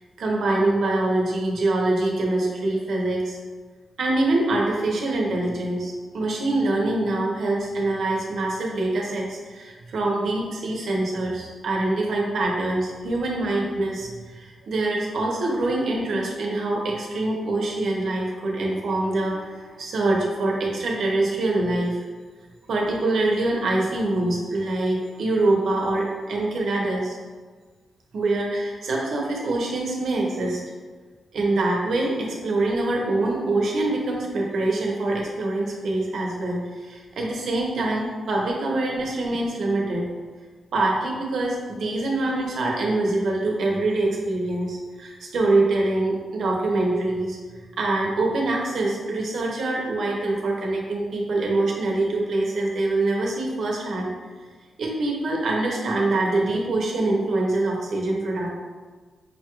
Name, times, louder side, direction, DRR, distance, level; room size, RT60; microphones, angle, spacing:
voice 1, 0.2-3.4 4.0-22.0 22.7-27.2 28.1-30.6 31.3-40.0 40.7-47.4 47.8-54.1 54.8-58.5, right 2 dB, 65° right, -2 dB, 0.8 m, -24 dB
5.4 x 2.3 x 3.0 m, 1.5 s
wide cardioid pair, 140°, 0 cm